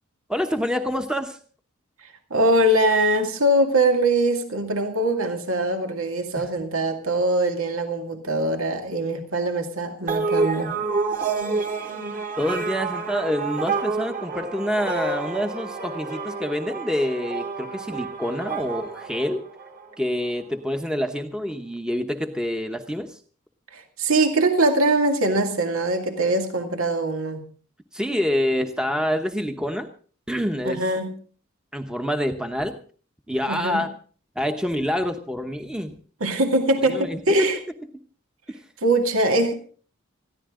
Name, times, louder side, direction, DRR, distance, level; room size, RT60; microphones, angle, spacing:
voice 1, 0.3-1.4 6.4-6.5 12.4-19.4 20.0-23.2 27.9-29.9 30.3-30.8 31.7-32.8 33.3-33.9 34.4-35.9 36.9-37.5 38.5-38.6, equal, 5° right, 6 dB, 1.0 m, -27 dB
voice 2, 2.3-10.7 23.7-27.4 30.6-31.1 33.5-33.8 36.2-37.6 38.8-39.5, right 1 dB, 80° right, 5 dB, 2.3 m, -22 dB
sound 1, 10.1-19.9, right 4 dB, 40° right, 2.3 m, -29 dB
21.0 x 14.5 x 3.7 m, 0.41 s
head